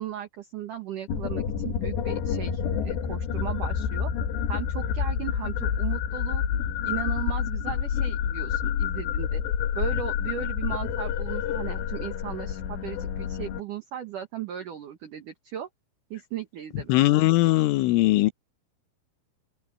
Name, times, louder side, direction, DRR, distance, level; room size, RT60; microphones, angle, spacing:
voice 1, 0.0-4.1 4.5-6.4 6.8-9.4 9.7-15.7 16.1-17.0, right 10 dB, 65° right, 2.1 m, -36 dB
sound 1, 1.1-13.6, left 8 dB, 60° left, 4.0 m, -28 dB
voice 2, 16.9-18.3, left 18 dB, 80° left, 3.3 m, -20 dB
open air
omnidirectional pair, 5.8 m